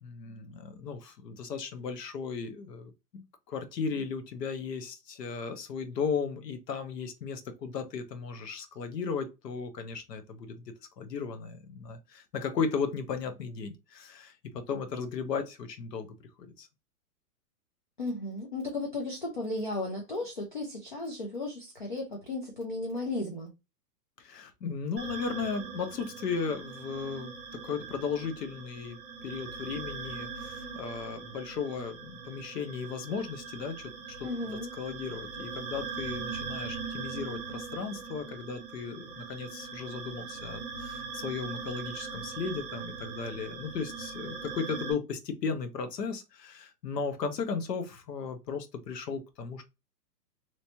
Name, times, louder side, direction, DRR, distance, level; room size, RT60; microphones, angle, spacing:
voice 1, 0.0-10.6 11.0-16.1 16.4-16.7 24.2-33.9 34.2-34.3 34.8-49.6, left 5 dB, 80° left, 1.1 m, -36 dB
voice 2, 18.0-23.5 34.2-34.7, left 2 dB, 35° left, 0.4 m, -35 dB
sound 1, 25.0-44.9, right 5 dB, 10° right, 0.7 m, -41 dB
3.1 x 3.0 x 2.8 m
hypercardioid pair, 170°, 48 cm